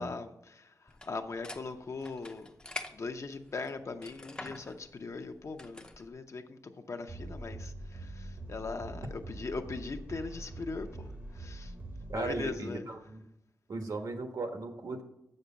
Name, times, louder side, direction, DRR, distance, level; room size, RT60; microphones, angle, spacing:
voice 1, 0.0-2.5 2.9-11.7 12.1-12.8, left 4 dB, 50° left, 7 dB, 0.7 m, -40 dB
sound 1, 0.9-6.1, left 1 dB, 15° left, 0.6 m, -47 dB
sound 2, 7.1-12.5, right 1 dB, 25° right, 0.8 m, -44 dB
voice 2, 12.1-13.2 13.7-15.0, right 3 dB, 70° right, 5 dB, 1.3 m, -37 dB
7.7 x 6.6 x 7.1 m, 0.87 s
wide cardioid pair, 155°, 7 cm